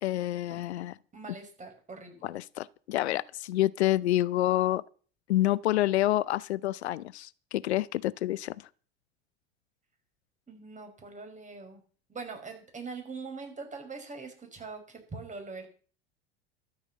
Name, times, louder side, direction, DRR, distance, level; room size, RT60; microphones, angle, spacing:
voice 1, 0.0-0.9 2.2-4.8 5.3-8.6, left 14 dB, 75° left, 0.6 m, -28 dB
voice 2, 1.1-2.3 10.5-11.8 12.1-15.7, right 4 dB, 20° right, 5.6 m, -42 dB
12.5 x 8.8 x 7.5 m
hypercardioid pair, 80°, 33 cm